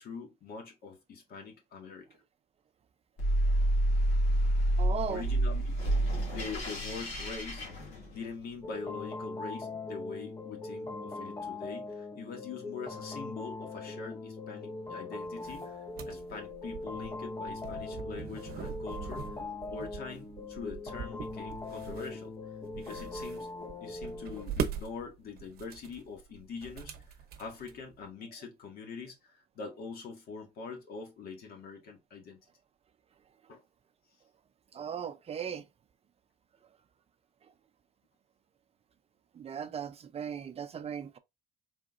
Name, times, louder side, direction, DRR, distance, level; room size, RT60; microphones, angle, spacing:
voice 1, 0.0-2.1 5.1-5.8 6.1-19.2 19.7-22.3 22.8-23.5 23.8-32.4 33.5-33.6, left 5 dB, 65° left, 1.7 m, -44 dB
sound 1, 3.2-8.5, right 1 dB, 85° left, 2.2 m, -29 dB
voice 2, 4.8-5.2 34.7-35.6 39.4-41.2, right 8 dB, 35° right, 0.5 m, -37 dB
sound 2, 8.6-24.4, left 3 dB, 20° left, 0.6 m, -41 dB
sound 3, 15.3-28.0, right 7 dB, 65° right, 0.8 m, -42 dB
4.2 x 3.6 x 2.5 m
cardioid pair, 110°, 17 cm